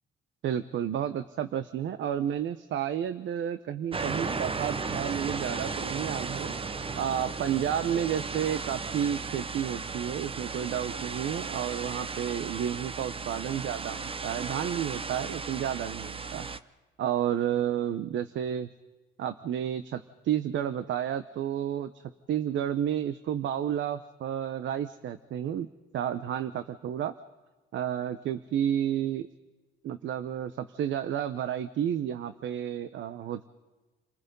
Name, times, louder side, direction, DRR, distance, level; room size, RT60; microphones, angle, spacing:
voice 1, 0.4-6.5 7.0-16.5 17.0-18.7 19.2-25.7 25.9-27.1 27.7-29.3 29.8-33.5, right 10 dB, 75° right, 12 dB, 0.9 m, -31 dB
sound 1, 3.9-16.6, right 4 dB, 25° right, 0.9 m, -35 dB
30.0 x 20.0 x 5.4 m, 1.2 s
cardioid pair, 90°, 20 cm